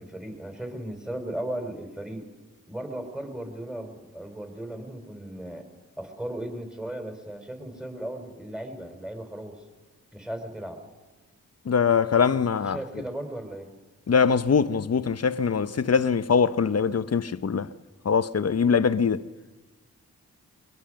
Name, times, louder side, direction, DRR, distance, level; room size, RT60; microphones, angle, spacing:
voice 1, 0.0-2.3 2.7-5.7 6.0-9.6 10.1-10.8 12.4-13.7, right 1 dB, ahead, 5.0 m, -36 dB
voice 2, 11.7-12.8 14.1-17.7 18.0-19.2, left 6 dB, 50° left, 0.9 m, -22 dB
22.5 x 21.0 x 6.6 m
supercardioid pair, 45°, 34 cm